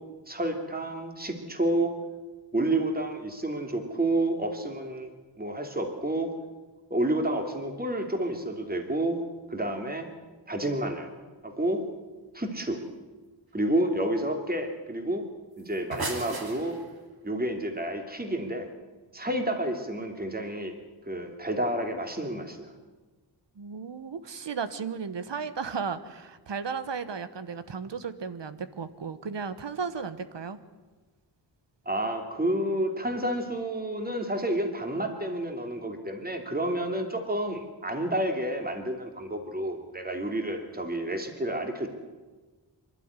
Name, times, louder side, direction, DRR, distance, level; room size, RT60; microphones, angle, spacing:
voice 1, 0.3-2.0 2.5-5.1 5.4-6.3 6.9-9.2 9.5-10.1 10.5-11.1 11.4-11.8 12.3-12.8 13.5-15.2 15.6-16.8 17.2-18.7 19.1-20.8 21.1-22.7 31.9-41.9, right 1 dB, 20° right, 4 dB, 2.7 m, -30 dB
sound 1, 15.6-17.1, right 2 dB, 55° right, 3.0 m, -36 dB
voice 2, 23.5-30.6, right 5 dB, 75° right, 12 dB, 1.3 m, -35 dB
24.5 x 12.5 x 9.7 m, 1.3 s
wide cardioid pair, 85°, 43 cm